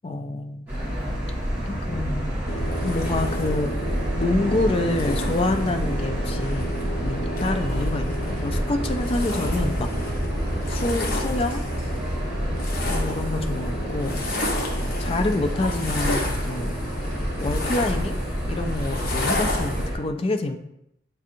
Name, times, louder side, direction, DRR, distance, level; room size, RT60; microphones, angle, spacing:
voice 1, 0.0-0.7 1.6-2.3 2.8-3.7 4.2-6.7 7.0-9.9 10.7-11.6 12.9-14.2 15.0-16.8 17.4-18.2 18.5-20.6, left 2 dB, 30° left, 6 dB, 0.3 m, -27 dB
sound 1, 0.7-20.0, equal, 10° right, 1.4 m, -28 dB
sound 2, 2.5-19.9, left 1 dB, 50° left, 0.7 m, -31 dB
7.2 x 2.7 x 2.5 m, 0.80 s
head